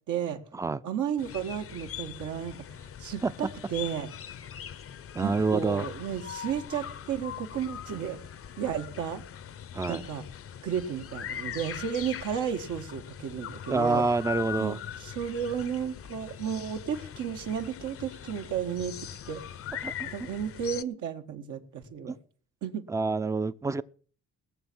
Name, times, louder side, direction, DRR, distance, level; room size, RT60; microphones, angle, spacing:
voice 1, 0.1-0.4 0.8-4.1 5.2-8.2 8.6-9.2 9.9-10.2 10.6-14.0 14.6-19.0 19.3-19.4 20.0-22.2 22.6-22.9, right 8 dB, 75° right, 1.7 m, -33 dB
sound 1, 1.2-20.8, left 9 dB, 50° left, 0.7 m, -41 dB
voice 2, 5.1-5.9 9.7-10.0 13.7-14.8 19.8-20.1 22.1-22.2 22.9-23.8, right 3 dB, 10° right, 0.5 m, -27 dB
18.5 x 7.1 x 6.2 m
cardioid pair, 90°, 30 cm